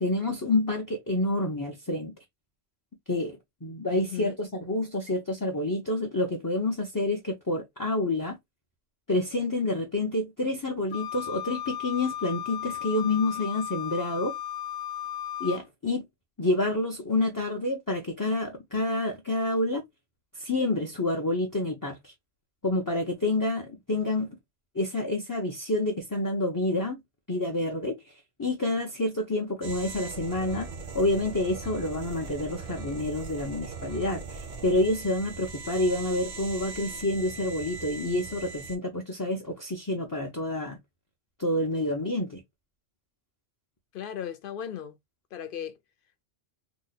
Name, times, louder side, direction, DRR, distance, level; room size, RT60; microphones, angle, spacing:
voice 1, 0.0-2.1 3.1-8.4 9.1-14.4 15.4-16.0 16.4-19.8 20.4-22.1 22.6-24.4 24.7-27.0 27.3-28.0 28.4-30.7 30.9-40.8 41.4-42.4, left 2 dB, 25° left, 0.5 m, -28 dB
voice 2, 3.9-4.4 43.9-45.0 45.3-45.8, left 9 dB, 60° left, 0.7 m, -36 dB
Wind instrument woodwind instrument, 10.9-15.6, left 11 dB, 85° left, 1.0 m, -35 dB
sound 1, 29.6-38.8, right 4 dB, 45° right, 0.7 m, -40 dB
2.8 x 2.1 x 3.9 m
omnidirectional pair, 1.2 m